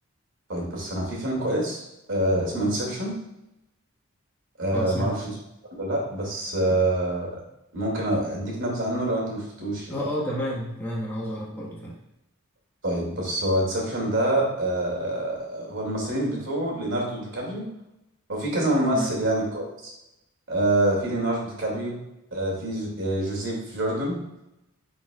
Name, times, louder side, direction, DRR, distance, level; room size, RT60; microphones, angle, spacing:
voice 1, 0.5-1.8 2.1-3.2 4.6-5.3 5.8-7.3 7.7-9.9 12.8-17.7 18.3-19.9 20.5-22.0 22.3-24.2, right 1 dB, 60° right, -2 dB, 2.5 m, -26 dB
voice 2, 4.7-5.2 9.9-11.9 18.9-19.1, equal, 10° left, -5 dB, 1.5 m, -30 dB
10.0 x 5.1 x 2.4 m, 0.89 s
head